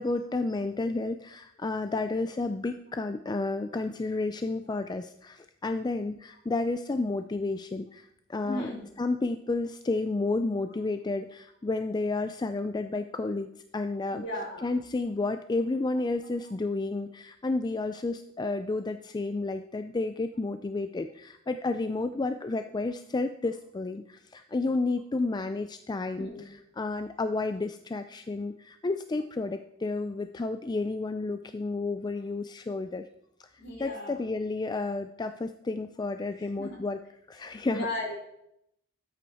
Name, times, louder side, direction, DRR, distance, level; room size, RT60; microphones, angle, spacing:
voice 1, 0.0-8.7 9.0-14.2 14.6-33.1 33.4-33.5 33.8-37.0 37.3-37.9, left 3 dB, 20° left, 9 dB, 0.4 m, -31 dB
voice 2, 8.4-8.8 14.1-14.7 26.2-26.5 33.6-34.2 36.4-36.8 37.7-38.2, left 1 dB, 55° left, -2 dB, 4.6 m, -36 dB
13.0 x 8.5 x 4.2 m, 0.78 s
head